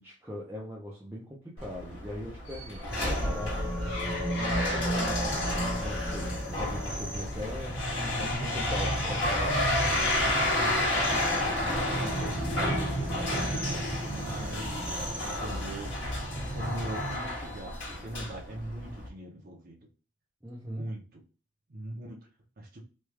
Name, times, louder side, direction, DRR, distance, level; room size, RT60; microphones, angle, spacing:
voice 1, 0.0-3.6 4.4-9.7 20.4-20.9, left 1 dB, 10° right, -5 dB, 0.5 m, -41 dB
sound 1, 1.6-19.1, left 1 dB, 65° left, 1.4 m, -31 dB
sound 2, 2.9-17.2, right 1 dB, 15° left, 1.2 m, -36 dB
voice 2, 8.3-9.0 10.5-11.0 11.7-16.1 16.5-19.9 20.6-21.2 21.7-22.3 22.6-22.8, right 1 dB, 50° right, -2 dB, 0.7 m, -41 dB
3.1 x 2.3 x 3.2 m, 0.38 s
head